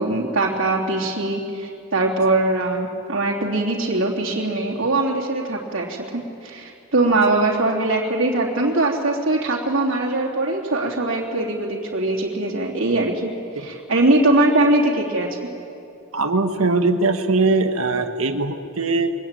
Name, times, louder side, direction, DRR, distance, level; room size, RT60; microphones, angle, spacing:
voice 1, 0.0-13.3 13.6-15.4, right 2 dB, 70° right, -2 dB, 3.1 m, -21 dB
voice 2, 16.1-19.1, right 3 dB, 85° right, 6 dB, 1.6 m, -21 dB
23.0 x 21.0 x 9.0 m, 2.6 s
head